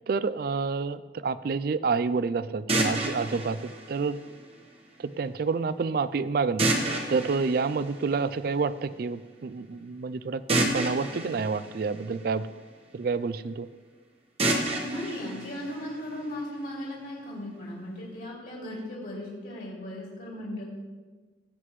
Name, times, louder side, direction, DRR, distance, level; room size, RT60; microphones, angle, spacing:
voice 1, 0.1-4.2 5.0-6.7 7.1-12.4 12.9-13.7, right 4 dB, 50° right, 15 dB, 0.3 m, -28 dB
sound 1, 2.7-4.7 6.6-8.6 10.5-12.7 14.4-16.4, right 2 dB, 30° right, 1.2 m, -30 dB
voice 2, 14.8-20.6, left 1 dB, 60° left, -4 dB, 2.5 m, -37 dB
17.0 x 7.9 x 3.1 m, 1.4 s
head